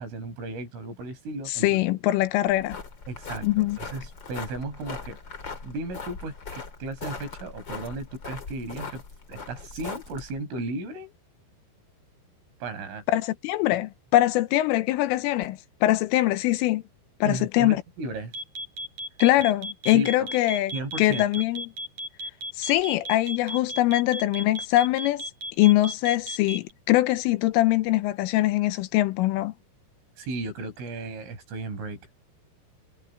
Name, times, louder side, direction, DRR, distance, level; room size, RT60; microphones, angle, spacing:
voice 1, 0.0-1.8 3.1-5.2 5.6-9.0 9.3-11.1 12.6-13.0 17.2-18.3 19.9-20.3 20.7-21.2 30.2-32.2, right 2 dB, 70° right, 8.5 m, -35 dB
voice 2, 1.5-2.8 3.4-3.8 13.1-16.8 17.2-17.8 19.2-20.7 21.0-21.7 22.6-25.2 25.6-29.5, left 16 dB, 85° left, 3.3 m, -23 dB
sound 1, 2.5-10.4, left 4 dB, 30° left, 2.5 m, -40 dB
sound 2, 18.3-26.7, right 1 dB, 35° right, 5.9 m, -34 dB
omnidirectional pair, 5.9 m